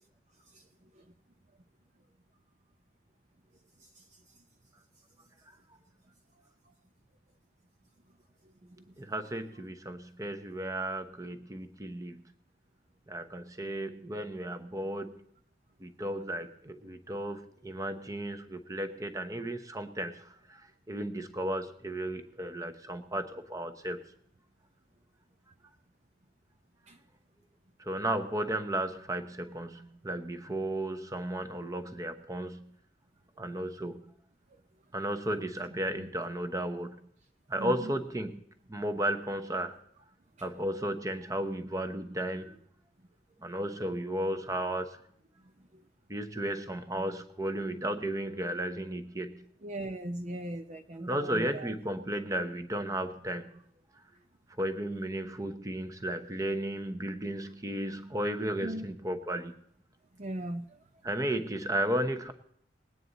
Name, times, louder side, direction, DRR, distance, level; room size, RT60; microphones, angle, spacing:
voice 1, 9.0-12.2 13.1-15.1 15.8-20.2 20.9-24.0 27.9-32.7 33.4-34.0 34.9-37.0 37.5-38.4 38.7-39.7 40.4-42.6 43.4-45.0 46.1-49.4 51.0-53.5 54.6-59.5 61.0-62.3, right 1 dB, 20° right, 9 dB, 0.9 m, -34 dB
voice 2, 35.7-36.1 37.6-38.0 40.4-40.5 45.7-45.8 49.6-51.7 58.6-58.9 60.2-60.8, right 1 dB, 40° right, 6 dB, 0.6 m, -39 dB
20.5 x 9.3 x 4.0 m, 0.67 s
head